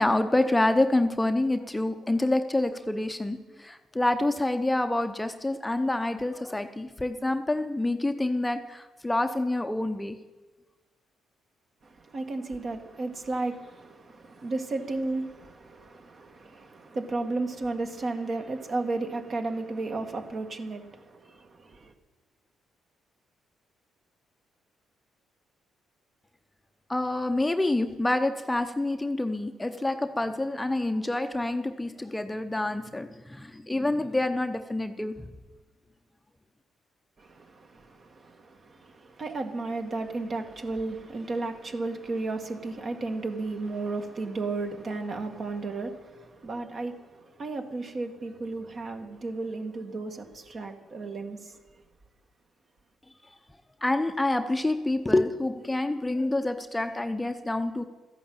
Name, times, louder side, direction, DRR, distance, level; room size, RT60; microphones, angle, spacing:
voice 1, 0.0-10.1 26.9-35.3 53.8-57.8, left 2 dB, 10° left, 0.8 m, -27 dB
voice 2, 11.8-21.9 37.2-51.6, right 3 dB, 45° right, 1.9 m, -34 dB
13.5 x 11.0 x 8.8 m
cardioid pair, 90°, 0 cm